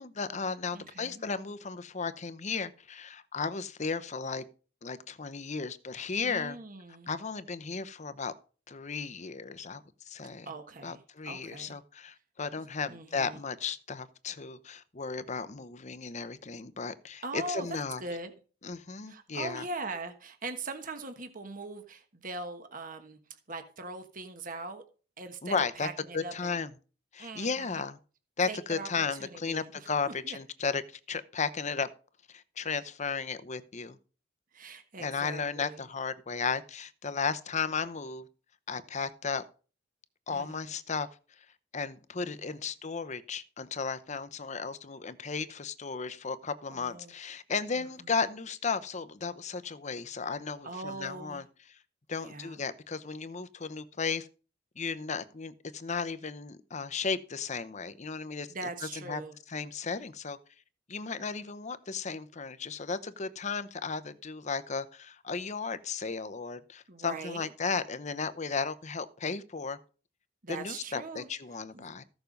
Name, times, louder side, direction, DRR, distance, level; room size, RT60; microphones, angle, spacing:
voice 1, 0.0-4.4 4.8-6.6 7.1-8.3 8.7-9.8 10.1-10.5 10.8-18.0 18.6-19.6 25.4-25.9 26.1-26.7 27.1-28.0 28.4-31.9 32.3-34.0 35.0-38.3 38.7-39.4 40.3-41.1 41.7-51.4 52.1-54.3 54.8-59.2 59.5-60.4 60.9-69.8 70.5-72.0, left 5 dB, 35° left, 0.8 m, -35 dB
voice 2, 0.7-1.2 6.2-7.1 10.4-11.8 12.8-13.4 17.2-18.3 19.0-24.8 25.2-26.6 27.2-27.8 28.5-28.9 29.2-30.4 34.5-35.8 40.3-40.8 42.2-42.6 46.7-47.1 47.7-48.1 50.6-51.4 52.2-52.6 58.5-59.4 66.9-67.5 70.4-71.3 71.7-71.9, right 3 dB, 45° right, 1.4 m, -41 dB
14.5 x 7.0 x 5.3 m
head